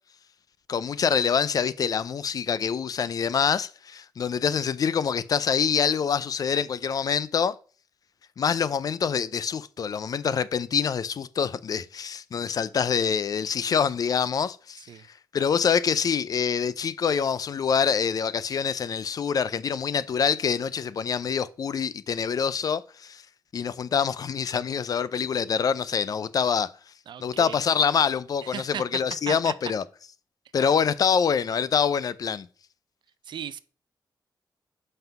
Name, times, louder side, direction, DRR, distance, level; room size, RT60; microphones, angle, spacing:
voice 1, 0.7-7.6 8.4-14.9 15.3-23.2 23.5-26.7 27.2-29.8 30.5-32.5, left 7 dB, 50° left, 0.4 m, -25 dB
voice 2, 27.1-27.6 28.5-29.0 29.3-29.5 33.3-33.6, right 9 dB, 70° right, 0.5 m, -36 dB
5.7 x 5.5 x 5.8 m
wide cardioid pair, 140°, 8 cm